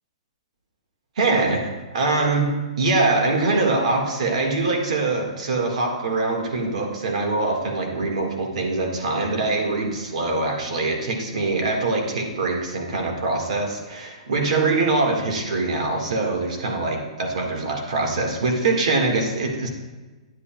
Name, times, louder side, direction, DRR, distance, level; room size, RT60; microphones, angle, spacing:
voice 1, 1.2-2.5 2.8-19.7, right 3 dB, 70° right, 2 dB, 1.8 m, -23 dB
11.0 x 8.2 x 2.3 m, 1.2 s
hypercardioid pair, 160°, 4 cm